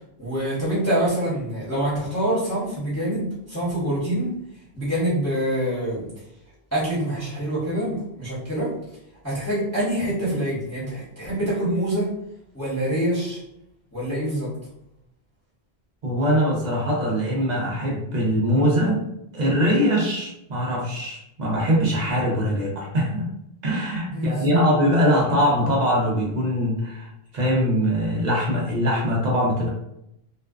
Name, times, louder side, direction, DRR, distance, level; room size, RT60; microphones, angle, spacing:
voice 1, 0.2-4.3 4.7-6.1 6.7-8.7 9.2-12.1 12.5-13.4 13.9-14.5 24.1-24.7, right 1 dB, 15° left, -10 dB, 0.9 m, -25 dB
voice 2, 16.0-19.0 19.3-23.3 23.6-27.1 27.3-29.7, equal, 50° right, -3 dB, 0.6 m, -22 dB
2.5 x 2.2 x 2.2 m, 0.80 s
omnidirectional pair, 1.1 m